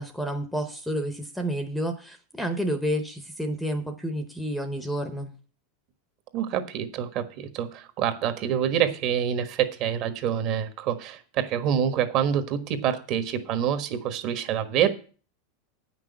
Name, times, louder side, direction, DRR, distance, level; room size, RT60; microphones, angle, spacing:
voice 1, 0.0-5.3, equal, ahead, 8 dB, 0.9 m, -30 dB
voice 2, 6.3-14.9, right 9 dB, 40° right, 9 dB, 1.3 m, -26 dB
9.2 x 6.1 x 8.1 m, 0.39 s
supercardioid pair, 160°, 0 cm